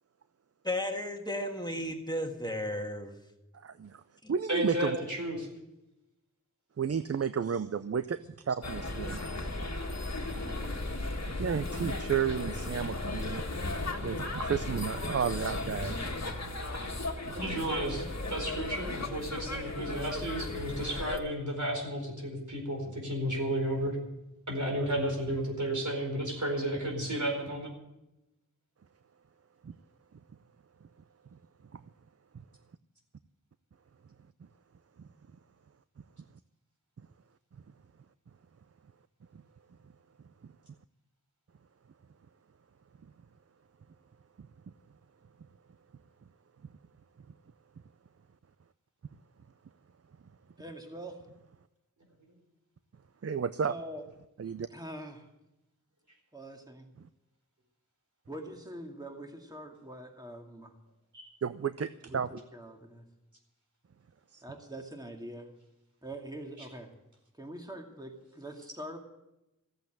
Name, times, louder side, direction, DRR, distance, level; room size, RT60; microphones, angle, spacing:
voice 1, 0.6-3.1 4.2-4.3, left 1 dB, 15° left, 3 dB, 1.6 m, -34 dB
voice 2, 3.5-4.0 4.3-5.0 6.8-9.2 11.4-13.7 14.0-16.0 17.3-17.4 29.6-29.8 31.7-31.8 53.2-53.7 54.4-54.7 61.4-62.3 64.3-64.4, right 7 dB, 50° right, 13 dB, 0.5 m, -32 dB
voice 3, 4.5-5.5 17.3-24.0 24.5-27.7 61.1-61.3, right 1 dB, 65° right, 1 dB, 4.7 m, -33 dB
sound 1, 8.6-21.2, left 2 dB, 55° left, 1.7 m, -36 dB
voice 4, 50.6-51.3 53.7-54.0 54.7-55.3 56.3-56.9 58.3-60.8 62.1-63.1 64.4-65.5 66.0-66.9 67.3-69.0, right 1 dB, 10° right, 2 dB, 2.2 m, -44 dB
14.5 x 8.1 x 8.9 m, 0.92 s
wide cardioid pair, 45°, 31 cm